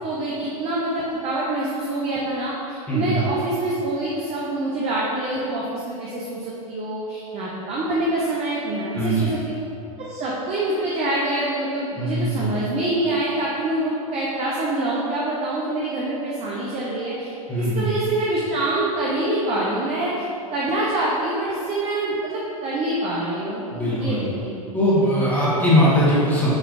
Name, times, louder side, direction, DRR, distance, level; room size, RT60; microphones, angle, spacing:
voice 1, 0.0-9.5 10.0-24.6, right 1 dB, 35° right, -5 dB, 0.7 m, -26 dB
voice 2, 8.9-9.3 12.0-12.4 17.5-17.9 23.7-24.3 24.7-26.5, equal, 10° left, -9 dB, 1.3 m, -20 dB
6.1 x 3.1 x 2.6 m, 2.7 s
hypercardioid pair, 105°, 19 cm